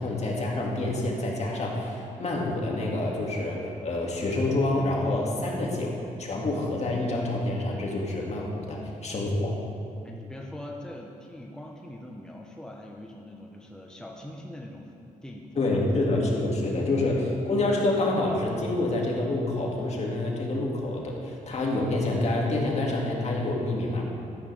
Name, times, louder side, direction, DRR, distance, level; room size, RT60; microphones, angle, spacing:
voice 1, 0.0-5.9 6.2-9.6 15.6-24.1, left 2 dB, 50° left, -2 dB, 2.3 m, -27 dB
voice 2, 10.0-15.7, left 1 dB, 5° left, 0 dB, 1.1 m, -42 dB
12.5 x 10.0 x 3.5 m, 2.7 s
cardioid pair, 65°, 15 cm